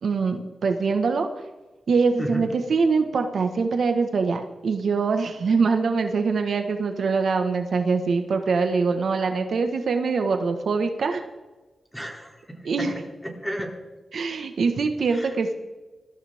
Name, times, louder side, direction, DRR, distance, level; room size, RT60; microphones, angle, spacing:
voice 1, 0.0-1.3 1.9-11.2 12.6-12.9 14.1-15.5, right 4 dB, 75° right, 6 dB, 1.4 m, -23 dB
voice 2, 2.2-2.5 11.9-12.9 13.2-13.8 15.1-15.3, equal, 5° left, 1 dB, 3.0 m, -33 dB
21.0 x 14.0 x 3.6 m, 1.2 s
wide cardioid pair, 125°, 0 cm